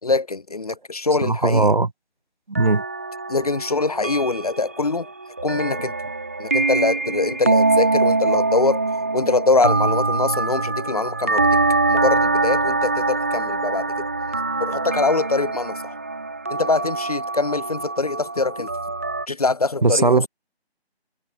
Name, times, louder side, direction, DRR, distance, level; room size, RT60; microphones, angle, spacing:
voice 1, 0.0-1.7 3.3-5.1 5.4-5.9 6.4-8.8 9.1-11.6 11.9-14.1 14.6-16.0 16.5-18.7 19.3-20.3, left 3 dB, 35° left, 5.9 m, -23 dB
voice 2, 1.2-1.9 2.5-2.8 19.8-20.3, right 3 dB, 45° right, 3.7 m, -18 dB
sound 1, 2.5-19.3, right 3 dB, 15° right, 1.8 m, -23 dB
figure-of-eight pair, 180°, 32 cm